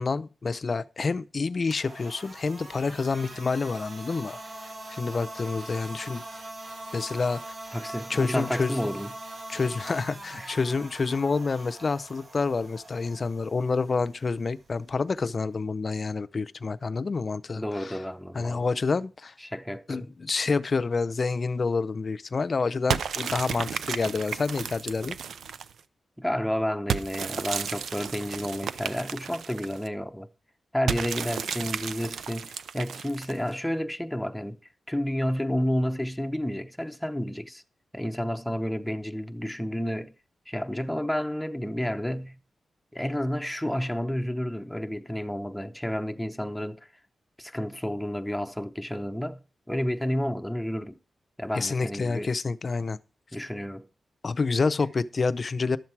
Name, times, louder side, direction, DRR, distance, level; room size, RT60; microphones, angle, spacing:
voice 1, 0.0-4.4 4.9-6.2 6.9-7.5 8.1-8.7 9.5-18.0 18.3-19.3 19.9-25.2 51.5-53.0 54.2-55.8, left 4 dB, 45° left, 0.5 m, -28 dB
sound 1, 1.6-15.6, right 1 dB, 50° right, 2.2 m, -43 dB
voice 2, 7.7-9.1 10.4-10.5 17.6-18.7 19.4-20.1 26.2-30.3 30.7-34.6 34.9-37.6 37.9-40.1 40.5-42.4 42.9-46.8 47.4-49.4 49.7-51.0 51.4-52.3 53.3-53.9, equal, 5° left, 0.8 m, -30 dB
sound 2, 22.9-25.8 26.9-29.9 30.9-33.5, right 7 dB, 90° right, 0.5 m, -33 dB
12.0 x 7.2 x 4.6 m
wide cardioid pair, 95°, 0 cm